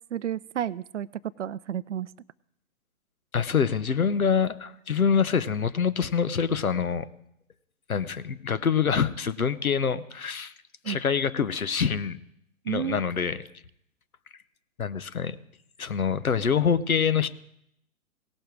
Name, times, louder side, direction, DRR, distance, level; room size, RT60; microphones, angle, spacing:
voice 1, 0.1-1.1 1.4-2.1 10.8-11.0 12.7-13.0, right 10 dB, 60° right, 20 dB, 0.5 m, -31 dB
voice 2, 3.3-7.1 7.9-10.5 10.8-12.2 12.7-13.4 14.8-15.4 15.8-17.3, left 6 dB, 80° left, 14 dB, 0.9 m, -25 dB
18.0 x 6.5 x 4.7 m, 0.74 s
figure-of-eight pair, 125°, 42 cm